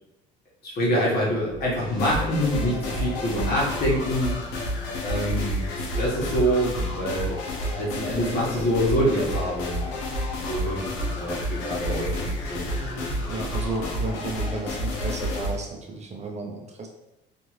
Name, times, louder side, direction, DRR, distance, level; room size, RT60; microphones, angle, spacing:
voice 1, 0.6-4.4 5.0-5.7 6.0-7.4 7.8-9.9 10.5-10.8 11.2-12.7 12.9-13.2, equal, 55° left, -5 dB, 1.3 m, -25 dB
sound 1, 1.3-14.1, right 2 dB, 20° left, 1.2 m, -42 dB
sound 2, 2.0-15.6, left 1 dB, 85° left, 0.6 m, -30 dB
voice 2, 12.8-16.9, right 3 dB, 35° right, 1 dB, 0.5 m, -33 dB
2.6 x 2.5 x 3.1 m, 0.92 s
supercardioid pair, 75°, 20 cm